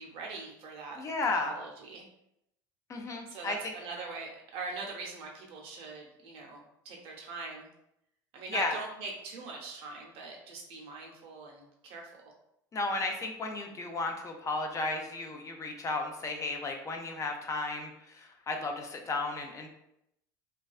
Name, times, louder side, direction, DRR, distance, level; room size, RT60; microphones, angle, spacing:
voice 1, 0.0-1.0 1.4-2.1 3.3-7.7 8.3-12.3, right 3 dB, 60° right, 0 dB, 0.7 m, -42 dB
voice 2, 1.0-1.5 2.9-3.7 8.5-8.8 12.7-19.7, left 3 dB, 30° left, 3 dB, 0.4 m, -34 dB
2.3 x 2.2 x 2.4 m, 0.80 s
hypercardioid pair, 85°, 11 cm